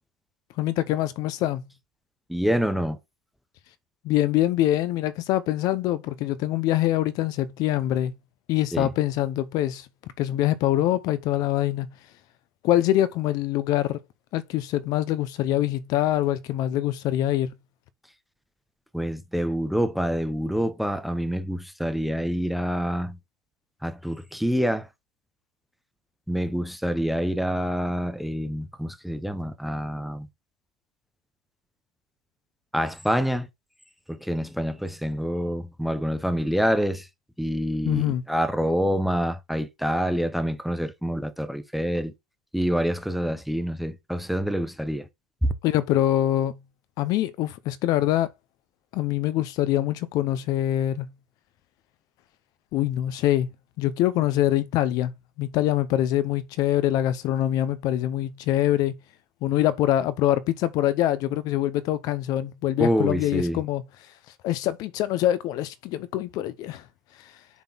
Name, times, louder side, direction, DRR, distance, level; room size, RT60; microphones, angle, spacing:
voice 1, 0.6-1.6 4.0-8.1 8.5-9.9 10.2-11.9 12.6-14.0 14.3-17.5 37.8-38.2 45.6-46.6 47.0-48.3 48.9-51.1 52.7-53.5 53.8-55.1 55.4-58.9 59.4-63.8 64.4-66.8, left 13 dB, 40° left, 0.6 m, -24 dB
voice 2, 2.3-3.0 8.7-8.9 18.9-23.2 23.8-24.9 26.3-30.3 32.7-33.5 34.1-37.1 37.4-42.1 42.5-45.0 45.4-45.5 62.8-63.6, equal, ahead, 0.6 m, -26 dB
7.0 x 4.2 x 3.8 m
supercardioid pair, 155°, 10 cm